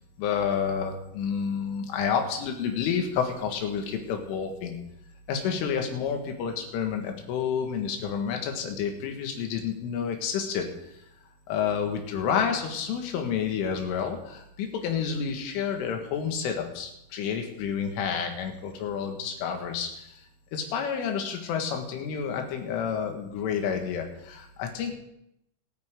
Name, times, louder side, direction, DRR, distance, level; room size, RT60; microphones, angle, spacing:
voice 1, 0.2-4.8 5.3-10.7 11.5-20.1 20.5-24.9, left 7 dB, 85° left, 3 dB, 4.3 m, -29 dB
26.0 x 9.4 x 3.8 m, 0.80 s
omnidirectional pair, 5.6 m